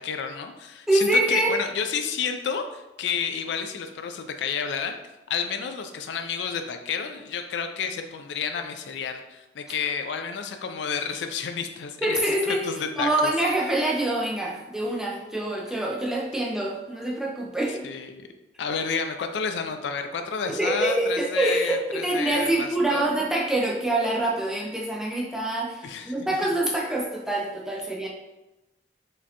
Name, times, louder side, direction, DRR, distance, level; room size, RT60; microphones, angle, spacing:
voice 1, 0.0-5.0 5.3-12.2 12.4-13.3 15.7-15.8 17.8-18.3 18.6-23.2 25.8-26.1, left 6 dB, 85° left, 7 dB, 0.3 m, -30 dB
voice 2, 0.9-1.5 12.0-12.7 13.0-17.8 20.4-28.1, right 1 dB, 5° right, -3 dB, 0.4 m, -25 dB
4.8 x 2.2 x 2.8 m, 1.0 s
head